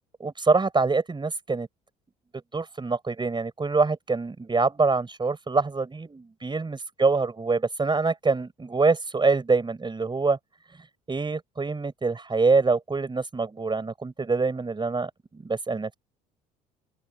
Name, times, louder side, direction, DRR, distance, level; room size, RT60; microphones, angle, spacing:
voice 1, 0.2-1.7 2.5-10.4 11.1-15.1 15.4-15.9, right 4 dB, 20° right, 4.5 m, -25 dB
open air
hypercardioid pair, 60°, 21 cm